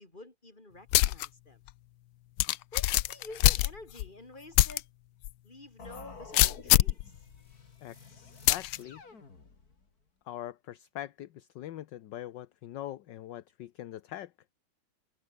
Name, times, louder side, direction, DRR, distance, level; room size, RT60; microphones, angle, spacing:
voice 1, 0.0-1.6 2.7-4.9 5.4-7.0, left 2 dB, 20° left, 4.6 m, -49 dB
sound 1, 0.9-1.3 1.7-1.8 2.4-4.1 4.6-4.8 5.2-5.3 6.3-7.0 8.5-8.8, left 16 dB, 85° left, 1.5 m, -23 dB
sound 2, 5.8-9.9, left 4 dB, 45° left, 3.5 m, -50 dB
voice 2, 7.8-9.0 10.3-14.3, left 13 dB, 65° left, 1.4 m, -42 dB
omnidirectional pair, 2.2 m